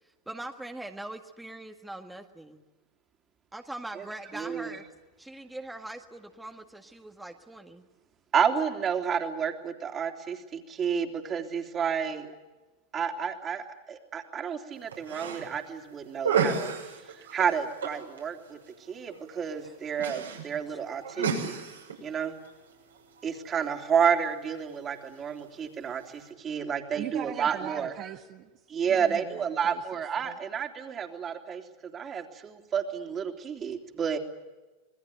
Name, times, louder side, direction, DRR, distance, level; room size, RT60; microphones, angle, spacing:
voice 1, 0.3-2.6 3.5-4.8 5.2-7.9 19.6-19.7 20.7-20.8, right 1 dB, 5° right, 4 dB, 1.8 m, -42 dB
voice 2, 4.3-4.7 8.3-12.3 12.9-16.7 17.3-18.6 18.9-21.6 22.0-22.4 23.2-28.1 28.7-31.6 31.9-34.2, right 7 dB, 30° right, 4 dB, 3.3 m, -30 dB
sound 1, 14.7-26.3, right 6 dB, 85° right, 6.7 m, -36 dB
voice 3, 27.0-28.6 28.8-30.4, right 11 dB, 45° right, 5 dB, 1.4 m, -41 dB
27.0 x 21.0 x 9.4 m, 1.2 s
hypercardioid pair, 95°, 0 cm